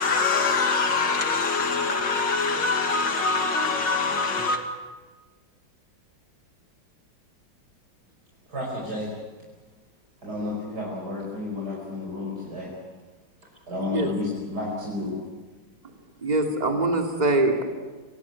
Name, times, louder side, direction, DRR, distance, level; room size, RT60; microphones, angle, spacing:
voice 1, 0.0-4.6, left 4 dB, 65° left, 2.8 m, -24 dB
voice 2, 8.5-9.1 10.2-12.7 13.7-15.1, left 2 dB, 55° right, 5.7 m, -31 dB
voice 3, 16.2-17.6, right 2 dB, 20° right, 2.7 m, -23 dB
26.0 x 18.0 x 8.5 m
omnidirectional pair, 2.1 m